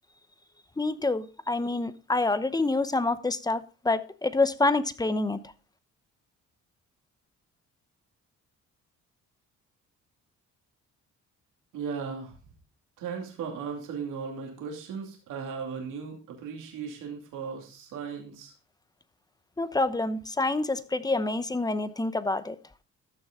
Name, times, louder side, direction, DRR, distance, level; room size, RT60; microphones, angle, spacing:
voice 1, 0.8-5.4 19.6-22.6, left 2 dB, 15° left, 0.8 m, -27 dB
voice 2, 11.7-12.3 13.0-18.5, right 6 dB, 90° right, 2.7 m, -37 dB
14.0 x 6.4 x 3.8 m
cardioid pair, 90°, 30 cm